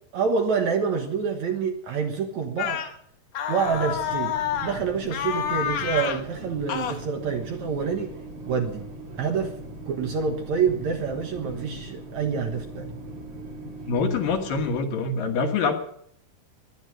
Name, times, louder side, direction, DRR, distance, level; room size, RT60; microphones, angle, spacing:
voice 1, 0.1-2.8 3.5-8.1 8.5-8.9 9.2-9.6 9.9-12.9, right 6 dB, 60° right, 5 dB, 2.1 m, -27 dB
sound 1, 2.6-2.9 3.3-4.8 5.1-6.2 6.7-7.0, left 9 dB, 85° left, 1.5 m, -28 dB
sound 2, 3.6-14.8, right 1 dB, 45° right, 4.9 m, -40 dB
voice 2, 13.9-15.8, left 4 dB, 65° left, 5 dB, 2.7 m, -25 dB
19.5 x 11.5 x 6.3 m, 0.66 s
omnidirectional pair, 4.9 m